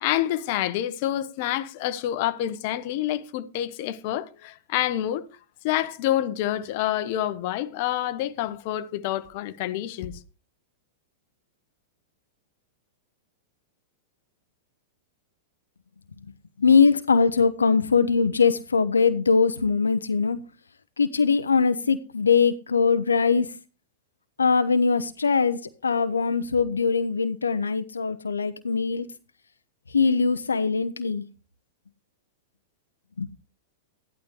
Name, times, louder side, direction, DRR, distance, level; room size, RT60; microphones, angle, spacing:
voice 1, 0.0-5.3 5.6-10.2, left 13 dB, 50° left, 1.0 m, -27 dB
voice 2, 16.6-20.4 21.0-23.5 24.4-29.1 29.9-31.2 33.2-33.3, left 5 dB, 80° left, 0.8 m, -22 dB
14.0 x 11.5 x 3.3 m
figure-of-eight pair, 100°, 0 cm